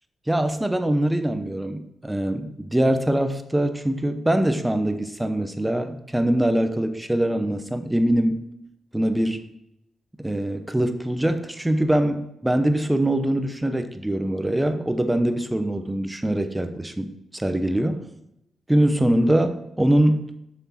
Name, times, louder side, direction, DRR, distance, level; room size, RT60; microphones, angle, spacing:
voice 1, 0.3-8.4 8.9-9.4 10.2-18.0 18.7-20.3, right 1 dB, 10° right, 9 dB, 0.8 m, -23 dB
6.5 x 6.3 x 4.2 m, 0.83 s
cardioid pair, 65°, 0 cm